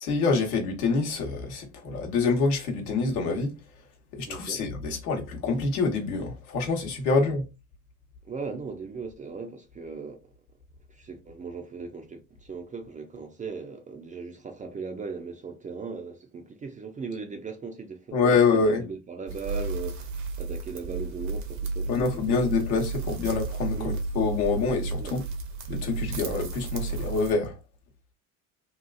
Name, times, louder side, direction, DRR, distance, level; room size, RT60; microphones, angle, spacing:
voice 1, 0.0-3.6 4.1-7.4 18.1-18.8 21.9-25.2 25.7-27.5, left 4 dB, 80° left, 0.9 m, -26 dB
voice 2, 4.3-4.6 7.2-7.3 8.2-10.2 10.9-18.2 18.5-20.1 20.4-22.7 23.7-24.0 25.0-25.2, right 4 dB, 20° right, 0.3 m, -38 dB
sound 1, 19.3-27.3, right 4 dB, 65° right, 0.8 m, -33 dB
2.9 x 2.4 x 2.3 m
hypercardioid pair, 60°, 43 cm